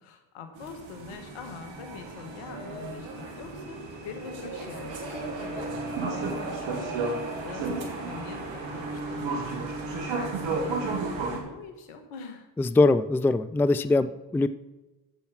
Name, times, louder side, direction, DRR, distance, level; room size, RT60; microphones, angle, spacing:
voice 1, 0.0-11.1 11.4-12.5, left 5 dB, 80° left, 7 dB, 1.4 m, -44 dB
sound 1, 0.6-11.4, right 3 dB, 65° right, 1.9 m, -33 dB
voice 2, 12.6-14.5, left 3 dB, 5° left, 13 dB, 0.3 m, -22 dB
9.0 x 7.0 x 5.8 m, 1.1 s
hypercardioid pair, 45°, 48 cm